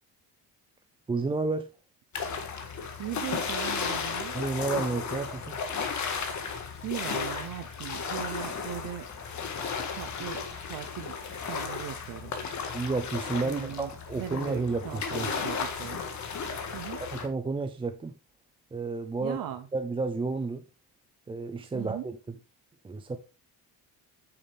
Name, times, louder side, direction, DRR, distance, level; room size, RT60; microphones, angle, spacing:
voice 1, 1.1-1.7 4.3-5.6 12.7-15.3 17.1-18.1 18.7-19.4 19.7-20.6 21.3-22.2 22.8-23.2, right 3 dB, 15° right, 0.5 m, -31 dB
sound 1, 2.1-17.3, left 5 dB, 45° left, 1.8 m, -34 dB
voice 2, 3.0-4.3 6.8-9.1 9.7-11.1 11.4-12.3 13.4-13.9 14.2-16.0 16.7-17.0 19.2-19.7 21.7-22.1, right 11 dB, 60° right, 0.9 m, -38 dB
8.8 x 6.9 x 3.5 m
cardioid pair, 155°, 39 cm